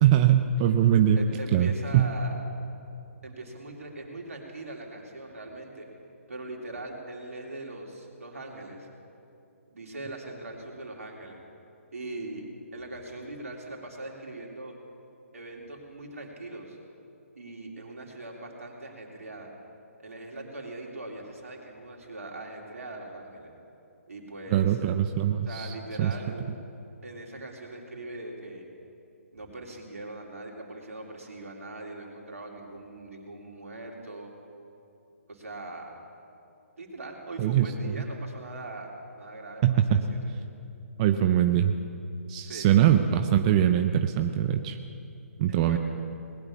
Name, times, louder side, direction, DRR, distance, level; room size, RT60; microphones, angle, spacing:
voice 1, 0.0-1.2 1.5-1.7 1.9-2.1 24.5-26.1 37.4-38.0 39.6-40.0 41.0-41.7 42.3-44.8 45.4-45.8, right 10 dB, 30° right, 7 dB, 0.5 m, -22 dB
voice 2, 1.2-2.4 3.2-5.9 6.3-8.9 9.7-11.4 11.9-12.5 12.7-14.7 15.3-16.8 17.3-19.5 20.0-23.5 24.1-24.8 25.4-26.5 27.0-28.7 29.3-34.3 35.3-36.0 36.8-40.2 42.4-42.8 45.5-45.8, right 2 dB, 75° right, 0 dB, 3.2 m, -41 dB
19.5 x 10.0 x 7.1 m, 2.7 s
hypercardioid pair, 145°, 8 cm